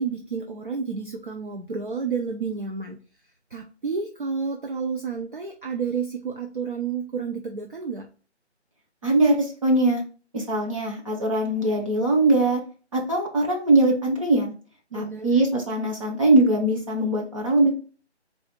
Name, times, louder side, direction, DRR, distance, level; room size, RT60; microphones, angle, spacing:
voice 1, 0.0-3.0 3.5-8.1 14.9-15.5, right 5 dB, 45° right, 1 dB, 0.6 m, -30 dB
voice 2, 9.0-10.0 10.3-12.6 12.9-14.5 14.9-17.7, right 2 dB, 30° right, -1 dB, 1.0 m, -21 dB
4.1 x 2.4 x 4.3 m, 0.37 s
figure-of-eight pair, 160°, 35 cm